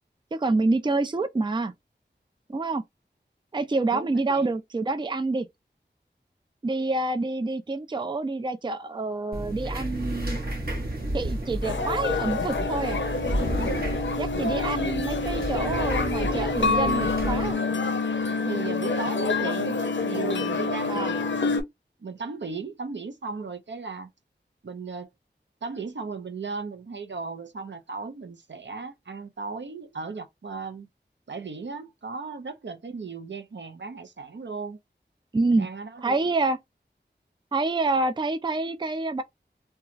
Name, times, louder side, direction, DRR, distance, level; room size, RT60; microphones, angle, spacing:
voice 1, 0.3-1.7 2.5-2.8 3.5-5.5 6.6-10.4 11.1-13.0 14.2-17.6 20.9-21.1 35.3-35.7 36.0-36.6 37.5-39.2, right 3 dB, 25° right, 0.4 m, -27 dB
voice 2, 3.9-4.5 18.4-21.3 22.0-24.1 24.6-25.1 25.6-30.9 31.3-34.8 35.5-36.3, right 4 dB, 75° right, 0.5 m, -36 dB
sound 1, 9.3-17.5, right 1 dB, 55° right, 0.9 m, -31 dB
sound 2, 11.6-21.6, left 4 dB, 90° left, 0.5 m, -27 dB
2.9 x 2.3 x 2.4 m
wide cardioid pair, 50°, 19 cm